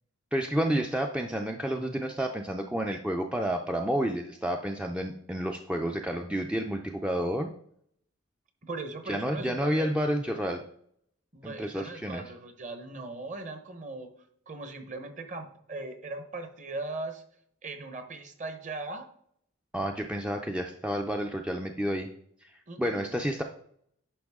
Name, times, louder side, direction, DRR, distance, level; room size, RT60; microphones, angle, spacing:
voice 1, 0.3-7.5 9.1-10.6 11.4-12.2 19.7-22.1 22.4-22.5 22.8-23.4, equal, 5° right, 3 dB, 0.4 m, -30 dB
voice 2, 8.6-9.9 11.3-14.1 14.5-17.2 17.6-19.1 22.7-23.1, right 2 dB, 35° right, 7 dB, 1.0 m, -39 dB
10.0 x 5.2 x 3.6 m, 0.67 s
head